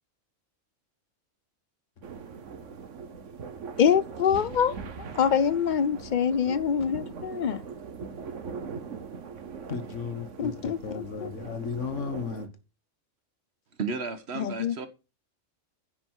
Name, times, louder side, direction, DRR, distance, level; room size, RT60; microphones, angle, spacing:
sound 1, 2.0-12.5, right 5 dB, 75° right, 1.4 m, -41 dB
voice 1, 3.8-4.8 5.2-7.6 10.4-11.3 14.3-14.9, left 7 dB, 50° left, 0.6 m, -25 dB
voice 2, 9.7-12.5, left 6 dB, 75° left, 1.7 m, -34 dB
voice 3, 13.8-14.9, right 4 dB, 60° right, 1.5 m, -33 dB
10.0 x 8.6 x 4.6 m
omnidirectional pair, 1.3 m